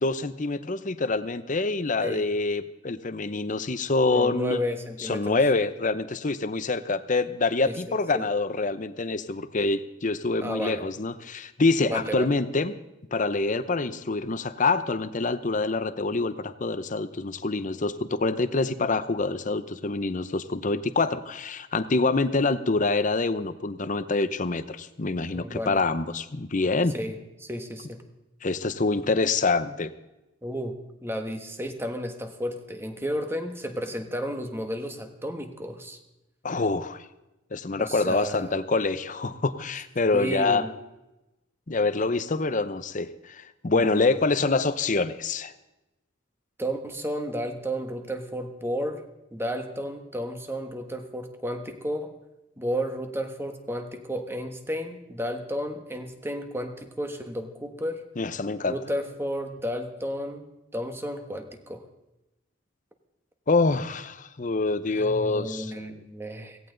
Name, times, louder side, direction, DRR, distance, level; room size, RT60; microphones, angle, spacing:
voice 1, 0.0-4.6 5.0-12.7 13.1-26.9 28.4-29.9 36.4-37.0 37.5-40.7 41.7-45.5 58.2-58.7 63.5-65.7, left 3 dB, 40° left, 12 dB, 0.8 m, -26 dB
voice 2, 4.1-5.4 7.6-8.2 10.4-10.8 11.9-12.3 25.3-25.8 26.9-28.0 30.4-30.7 31.0-36.0 37.8-38.5 40.1-40.7 43.7-44.2 46.6-49.0 49.3-52.1 52.6-58.0 58.6-60.5 60.7-61.8 64.9-66.6, equal, 15° right, 6 dB, 1.4 m, -32 dB
17.0 x 16.5 x 3.9 m, 0.97 s
head